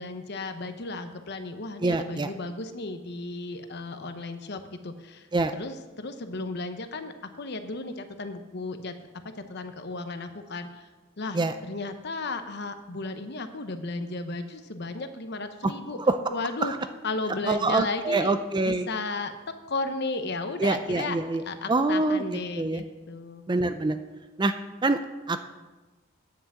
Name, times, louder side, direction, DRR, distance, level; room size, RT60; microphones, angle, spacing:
voice 1, 0.0-5.3 5.6-8.9 9.5-10.9 11.2-16.0 16.3-16.7 17.0-19.3 19.7-21.2 21.4-23.4, left 3 dB, 60° left, 8 dB, 0.9 m, -34 dB
voice 2, 1.8-2.3 5.3-5.5 11.3-11.5 15.6-15.7 16.1-16.2 16.6-16.8 17.5-18.9 20.6-21.4 21.7-22.8 23.5-24.0 24.4-24.5 24.8-25.0 25.3-25.4, right 3 dB, 25° right, 9 dB, 0.4 m, -25 dB
9.7 x 6.0 x 7.6 m, 1.2 s
head